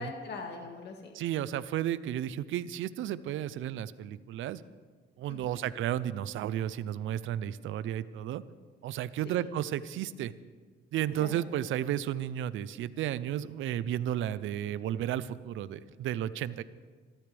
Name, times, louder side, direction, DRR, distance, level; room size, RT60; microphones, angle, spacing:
voice 1, 0.0-1.1 5.3-5.6 9.2-9.5 11.2-11.5, left 4 dB, 60° left, 1 dB, 2.2 m, -42 dB
voice 2, 1.1-4.6 5.2-8.4 8.8-10.3 10.9-16.6, right 11 dB, 80° right, 16 dB, 0.6 m, -33 dB
26.0 x 13.0 x 3.5 m, 1.4 s
cardioid pair, 90°, 20 cm